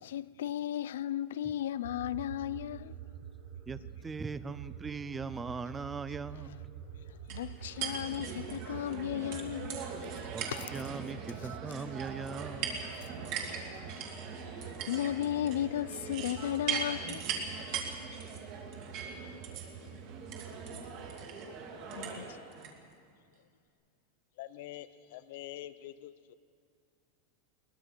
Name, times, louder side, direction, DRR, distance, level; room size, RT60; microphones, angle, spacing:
voice 1, 0.0-2.9 6.3-6.6 7.3-9.8 10.6-10.7 11.3-11.6 12.5-12.6 13.0-13.1 14.5-17.2 20.7-20.8 21.9-22.4, left 11 dB, 85° left, 0.6 m, -35 dB
sound 1, 1.8-21.2, right 9 dB, 60° right, 7.1 m, -48 dB
voice 2, 3.7-6.6 10.3-10.4 10.7-12.8, right 4 dB, 10° right, 0.4 m, -40 dB
sound 2, 7.3-22.7, right 6 dB, 35° right, 2.6 m, -40 dB
voice 3, 24.4-26.3, left 14 dB, 50° left, 0.8 m, -45 dB
22.0 x 21.0 x 6.2 m
supercardioid pair, 180°, 0 cm